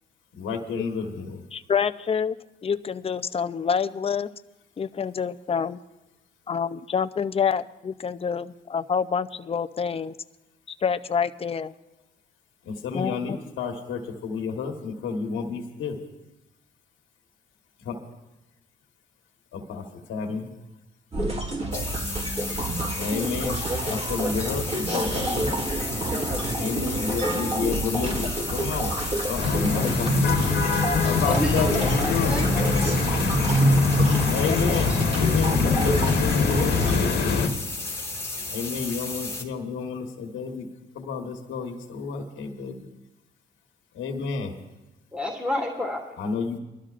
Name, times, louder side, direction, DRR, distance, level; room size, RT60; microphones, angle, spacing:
voice 1, 0.3-1.4 12.6-16.0 17.8-18.0 19.5-20.5 23.0-25.7 26.6-29.0 29.2-30.5 30.8-32.3 34.3-37.3 38.5-40.7 40.9-42.8 43.9-44.5 46.2-46.6, left 5 dB, 80° left, 3 dB, 1.4 m, -31 dB
voice 2, 1.5-4.3 4.8-5.8 6.5-10.1 10.8-11.7 12.9-13.4 34.5-34.6, left 6 dB, 30° left, 11 dB, 0.5 m, -27 dB
sound 1, 21.1-37.0, right 1 dB, 30° right, 3.5 m, -29 dB
sound 2, 21.7-39.4, left 3 dB, 15° left, 2.0 m, -34 dB
sound 3, 29.4-37.5, left 3 dB, 55° left, 1.4 m, -23 dB
voice 3, 30.9-32.0 32.3-33.2 45.1-46.2, left 1 dB, 5° right, -1 dB, 2.5 m, -31 dB
23.5 x 12.5 x 2.5 m, 1.0 s
cardioid pair, 90°, 20 cm